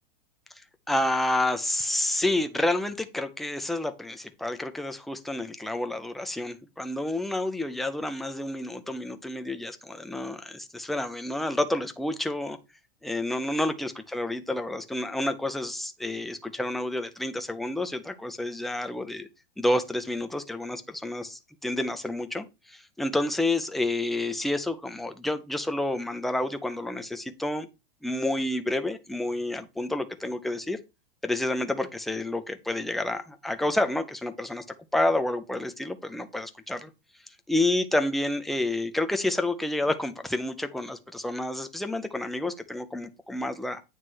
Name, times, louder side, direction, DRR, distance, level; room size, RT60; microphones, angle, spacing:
voice 1, 0.6-12.6 13.0-19.3 19.6-27.7 28.0-30.8 31.2-34.6 34.9-36.9 37.5-43.8, left 1 dB, ahead, 0.4 m, -29 dB
9.3 x 3.2 x 6.1 m
supercardioid pair, 150°, 29 cm